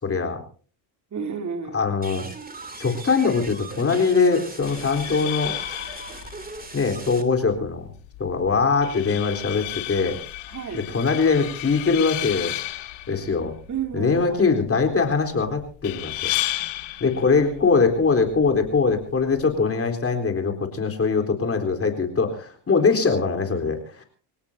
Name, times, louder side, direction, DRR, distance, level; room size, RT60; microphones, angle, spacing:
voice 1, 0.0-0.4 1.7-2.3 2.8-5.5 6.7-7.9 8.2-10.2 10.7-12.5 13.1-13.5 13.9-16.3 17.0-24.0, left 4 dB, 30° left, 4 dB, 4.1 m, -22 dB
voice 2, 1.1-1.8 10.5-10.9 13.7-14.4, right 6 dB, 40° right, 5 dB, 3.1 m, -31 dB
sound 1, 2.0-7.2, right 3 dB, 20° right, 3.0 m, -39 dB
sound 2, 4.6-19.6, left 17 dB, 90° left, 2.2 m, -34 dB
26.0 x 17.5 x 2.8 m, 0.41 s
supercardioid pair, 90°, 44 cm